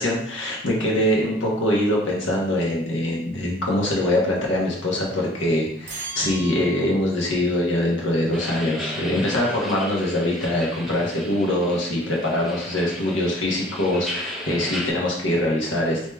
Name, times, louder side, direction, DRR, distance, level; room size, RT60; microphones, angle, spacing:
voice 1, 0.0-16.1, left 1 dB, 85° left, -2 dB, 1.1 m, -23 dB
sound 1, 5.9-7.2, right 3 dB, 40° right, 0.8 m, -37 dB
sound 2, 8.3-14.9, equal, ahead, 0.4 m, -35 dB
3.2 x 2.9 x 3.4 m, 0.71 s
head